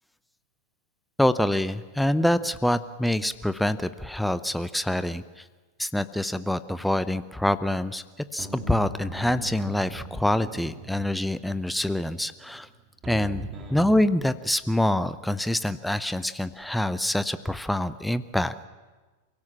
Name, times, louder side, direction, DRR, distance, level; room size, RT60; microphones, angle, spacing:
voice 1, 1.2-5.4 5.8-8.0 8.3-12.7 13.1-18.7, left 1 dB, ahead, 13 dB, 0.8 m, -26 dB
sound 1, 8.4-14.1, right 1 dB, 20° right, 3.6 m, -40 dB
29.0 x 17.0 x 7.5 m, 1.3 s
figure-of-eight pair, 90°, 0 cm